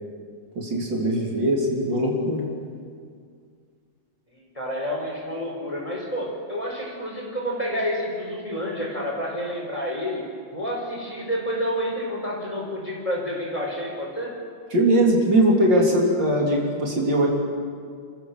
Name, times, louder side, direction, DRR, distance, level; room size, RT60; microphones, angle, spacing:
voice 1, 0.6-2.5 14.7-17.3, right 1 dB, 65° right, -1 dB, 3.9 m, -20 dB
voice 2, 4.3-10.2 10.5-14.4, equal, 15° left, -2 dB, 4.9 m, -29 dB
30.0 x 15.0 x 7.4 m, 2.1 s
omnidirectional pair, 2.1 m